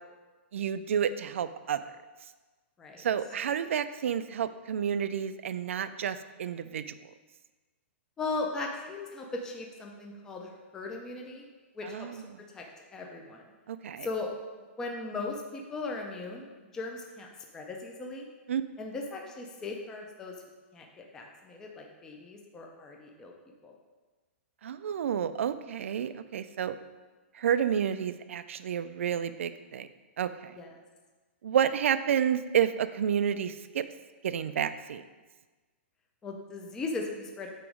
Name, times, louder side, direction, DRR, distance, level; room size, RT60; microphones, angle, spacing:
voice 1, 0.5-1.8 3.0-7.0 11.9-12.2 13.7-14.1 18.5-18.6 24.6-26.7 27.3-29.9 30.2-30.5 31.4-33.8 34.2-35.0, right 8 dB, 75° right, 12 dB, 0.4 m, -30 dB
voice 2, 8.2-11.5 11.7-12.2 12.5-12.6 12.9-13.5 14.0-14.3 14.8-17.3 17.5-18.3 18.8-20.4 20.7-23.3 23.6-23.7 30.5-30.7 36.2-37.5, left 3 dB, 10° left, 1 dB, 0.4 m, -38 dB
8.5 x 3.0 x 5.0 m, 1.3 s
hypercardioid pair, 175°, 7 cm